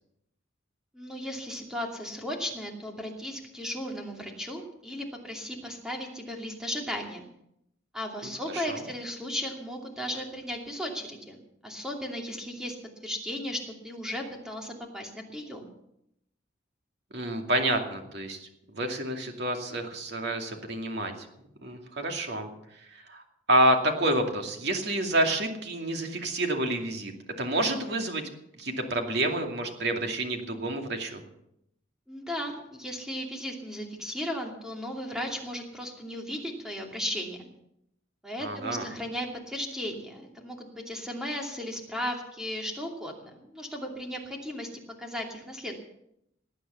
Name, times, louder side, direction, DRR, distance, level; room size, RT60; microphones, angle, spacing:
voice 1, 0.9-7.3 7.9-12.8 13.0-15.7 32.1-37.5 38.2-44.7 45.0-45.8, equal, 5° right, 1 dB, 2.7 m, -36 dB
voice 2, 8.5-8.8 17.1-18.5 18.7-21.1 21.6-22.5 22.9-23.2 23.5-27.1 27.4-28.3 28.6-31.2 38.4-38.9, right 1 dB, 55° right, 3 dB, 2.5 m, -28 dB
19.5 x 9.2 x 7.1 m, 0.77 s
head